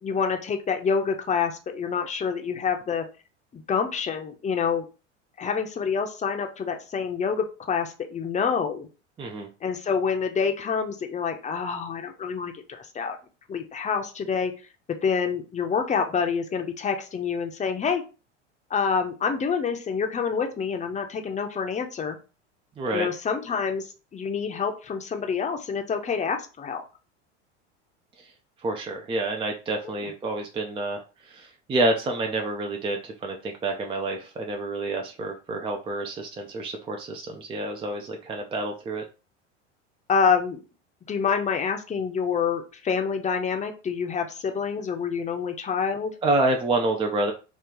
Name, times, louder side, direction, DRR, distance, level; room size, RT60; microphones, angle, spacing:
voice 1, 0.0-3.1 3.5-4.8 5.4-8.9 9.6-13.2 13.5-14.5 14.9-18.0 18.7-22.2 22.9-23.9 24.1-26.8 29.8-29.9 40.1-40.6 41.1-46.1, left 6 dB, 20° left, 4 dB, 0.7 m, -27 dB
voice 2, 9.2-9.5 22.8-23.1 28.6-39.0 46.2-47.3, right 2 dB, 15° right, 2 dB, 0.5 m, -28 dB
3.0 x 2.4 x 3.8 m, 0.33 s
hypercardioid pair, 85°, 35 cm